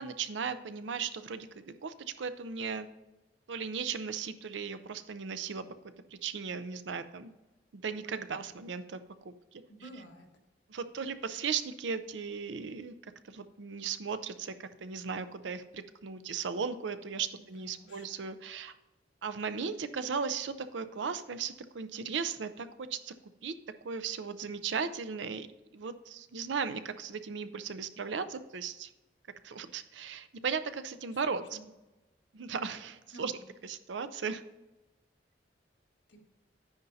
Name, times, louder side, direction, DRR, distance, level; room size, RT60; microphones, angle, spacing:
voice 1, 0.0-2.9 3.5-5.6 6.1-7.3 7.7-9.6 10.7-12.9 13.2-18.7 19.2-23.1 23.4-23.5 23.8-25.5 25.7-28.9 29.4-31.6 32.3-33.3 33.6-34.4, right 6 dB, 85° right, 11 dB, 0.5 m, -36 dB
voice 2, 9.7-10.3 17.4-18.1 31.2-31.6 33.1-33.4 36.1-36.2, right 1 dB, 85° left, 1 dB, 1.5 m, -51 dB
11.0 x 9.6 x 2.7 m, 1.1 s
head